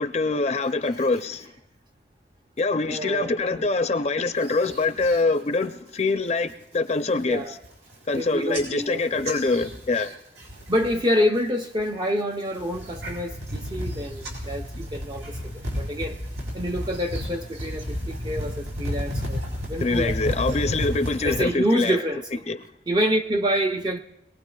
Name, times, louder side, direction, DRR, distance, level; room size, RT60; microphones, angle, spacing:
voice 1, 0.0-1.5 2.6-7.4 8.1-10.2 19.8-22.0 22.5-22.6, left 3 dB, 35° left, 0.5 m, -24 dB
voice 2, 2.9-3.7 7.2-7.6 8.1-9.1 10.7-16.2 16.5-19.4 19.7-20.6 21.2-22.5 22.9-24.0, equal, 25° right, 0.5 m, -27 dB
sound 1, 4.4-5.2 5.6-6.0 6.4-6.8 7.2-7.3 7.5-8.2 8.5-11.1 11.4-11.9 12.4-21.5, equal, 90° right, 5.4 m, -32 dB
25.5 x 18.5 x 2.3 m
head